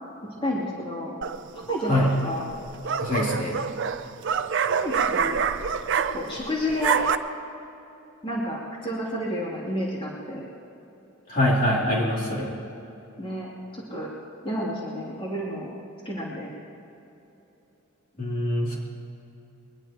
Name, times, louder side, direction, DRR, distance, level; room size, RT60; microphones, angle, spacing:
voice 1, 0.4-1.2 1.7-2.5 4.7-5.4 5.9-7.0 8.2-10.5 13.2-14.1 14.4-15.7 16.0-16.5, equal, 25° left, -6 dB, 2.9 m, -30 dB
sound 1, 1.2-1.7 2.5-6.4 6.7-7.2, right 6 dB, 60° right, 0.6 m, -26 dB
voice 2, 3.0-3.7 11.3-12.5 18.2-18.8, left 1 dB, 40° left, -5 dB, 3.0 m, -24 dB
23.0 x 19.5 x 3.0 m, 3.0 s
head